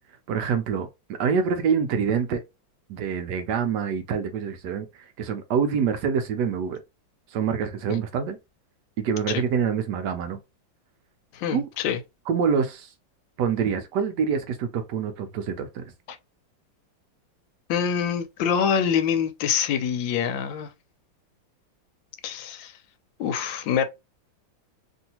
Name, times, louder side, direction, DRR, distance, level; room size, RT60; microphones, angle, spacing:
voice 1, 0.3-2.4 2.9-6.8 7.3-8.4 9.0-10.4 11.5-11.7 12.3-12.9 13.4-15.8, right 6 dB, 75° right, 1.0 m, -26 dB
voice 2, 11.3-12.0 16.1-16.2 17.7-20.7 22.2-22.7 23.2-23.8, left 7 dB, 80° left, 1.3 m, -25 dB
3.0 x 2.6 x 2.8 m
omnidirectional pair, 2.1 m